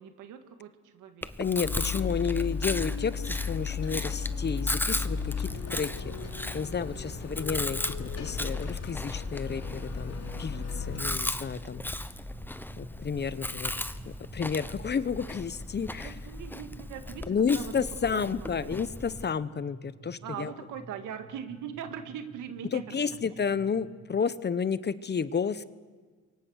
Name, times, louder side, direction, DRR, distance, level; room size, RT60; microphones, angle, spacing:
voice 1, 0.0-1.3 11.0-11.3 16.0-17.7 18.1-18.5 20.2-23.2, right 8 dB, 90° right, 8 dB, 2.0 m, -41 dB
Chewing mastication, 1.2-19.2, left 1 dB, 5° left, 0.9 m, -37 dB
voice 2, 1.4-6.1 6.5-11.8 12.8-13.8 14.3-16.1 17.3-20.5 22.7-25.6, left 6 dB, 35° left, 15 dB, 0.9 m, -31 dB
sound 1, 1.6-11.1, left 5 dB, 55° left, 2.9 m, -35 dB
sound 2, 4.4-24.2, right 3 dB, 65° right, 7.4 m, -50 dB
28.5 x 23.5 x 6.5 m, 1.4 s
cardioid pair, 90°, 30 cm